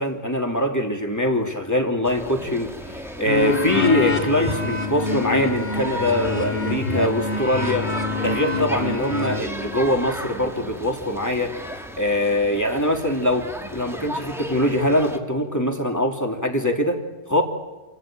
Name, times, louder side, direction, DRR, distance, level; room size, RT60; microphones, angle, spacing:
voice 1, 0.0-7.9 8.2-11.5 12.0-13.5 13.7-17.0 17.3-17.4, left 1 dB, 15° left, 2 dB, 2.7 m, -23 dB
sound 1, 2.0-15.2, equal, ahead, 1.6 m, -35 dB
sound 2, 3.2-9.4, left 4 dB, 50° left, 2.4 m, -26 dB
28.0 x 16.5 x 8.9 m, 1.2 s
omnidirectional pair, 1.3 m